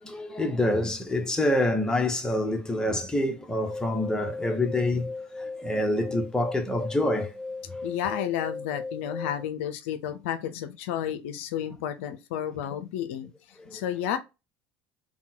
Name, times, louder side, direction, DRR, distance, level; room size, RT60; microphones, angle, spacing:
voice 1, 0.0-7.3 13.7-13.8, left 1 dB, 10° left, 1.0 m, -27 dB
sound 1, 3.5-9.5, left 3 dB, 10° right, 0.5 m, -37 dB
voice 2, 7.8-14.2, left 10 dB, 70° left, 0.5 m, -32 dB
3.6 x 2.3 x 4.2 m
hypercardioid pair, 75°, 7 cm